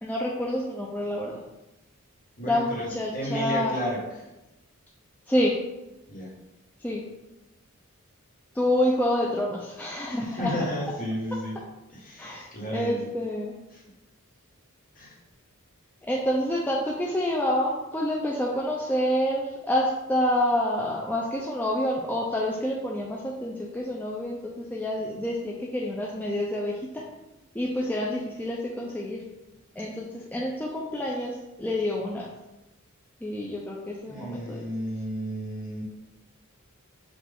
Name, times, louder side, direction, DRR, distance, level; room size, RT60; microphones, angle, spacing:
voice 1, 0.0-1.4 2.4-3.8 5.3-5.5 6.8-7.0 8.5-10.6 12.2-13.5 16.1-27.0 27.5-29.2 29.8-32.3 33.2-34.7, left 1 dB, 10° left, -3 dB, 0.4 m, -28 dB
voice 2, 2.4-4.3 6.1-6.3 10.2-11.6 11.9-13.1 13.7-13.8 14.9-15.2 34.1-35.8, equal, 40° left, -4 dB, 1.3 m, -33 dB
5.7 x 2.4 x 3.5 m, 0.97 s
head